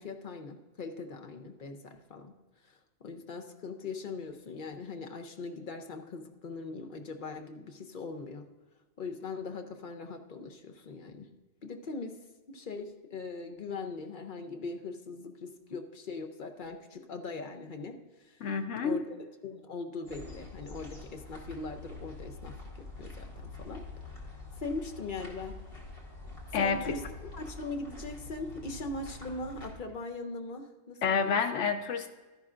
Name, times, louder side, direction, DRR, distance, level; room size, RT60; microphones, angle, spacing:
voice 1, 0.0-2.3 2.6-8.5 9.0-11.3 11.6-12.2 12.5-18.4 18.8-22.6 23.0-23.8 24.6-25.6 26.5-31.6, left 3 dB, 50° left, 4 dB, 0.8 m, -40 dB
voice 2, 18.4-19.0 26.5-26.9 31.0-32.1, left 5 dB, 80° left, 7 dB, 1.1 m, -29 dB
sound 1, 20.0-29.7, left 3 dB, 30° left, 2.1 m, -46 dB
13.0 x 10.5 x 2.5 m, 1.2 s
omnidirectional pair, 1.2 m